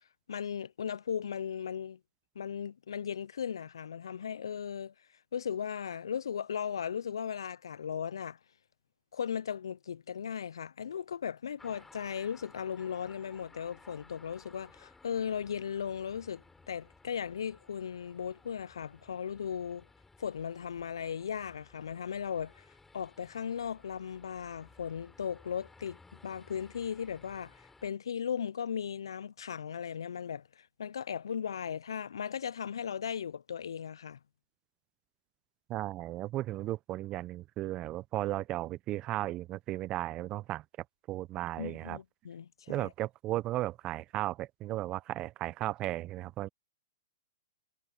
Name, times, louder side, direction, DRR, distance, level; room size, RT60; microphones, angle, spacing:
voice 1, 0.3-2.0 2.4-4.9 5.3-8.4 9.1-19.9 20.2-22.7 22.9-34.2 41.6-42.9, left 8 dB, 75° left, 0.4 m, -37 dB
sound 1, 11.6-27.9, left 3 dB, 10° left, 7.4 m, -59 dB
voice 2, 35.7-40.6 41.1-42.0 42.7-46.5, right 15 dB, 30° right, 0.7 m, -35 dB
hypercardioid pair, 120°, 2 cm